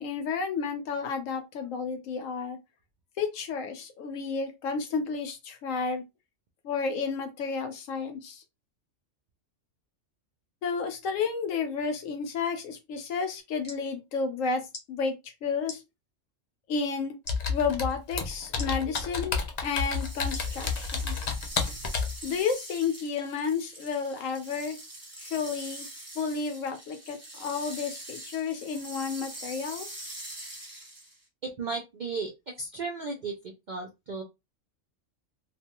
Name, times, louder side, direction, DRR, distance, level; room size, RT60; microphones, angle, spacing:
voice 1, 0.0-2.6 3.2-6.0 6.6-8.4 10.6-14.6 14.9-15.1 15.4-15.8 16.7-17.1 17.5-21.2 22.2-24.8 25.2-25.9 26.2-29.9, left 5 dB, 80° left, 1.1 m, -31 dB
sound 1, 13.4-13.8 14.7-14.9 15.6-15.8 17.2-17.4 18.6-19.1 20.3-20.5 21.1-21.2, left 3 dB, 40° left, 0.8 m, -41 dB
Computer keyboard, 17.3-22.2, left 5 dB, 55° left, 0.4 m, -30 dB
sound 2, 19.6-31.2, right 1 dB, 15° right, 0.9 m, -44 dB
voice 2, 31.4-32.3 32.6-33.3 33.7-34.2, right 4 dB, 65° right, 0.4 m, -34 dB
2.4 x 2.3 x 2.9 m
omnidirectional pair, 1.3 m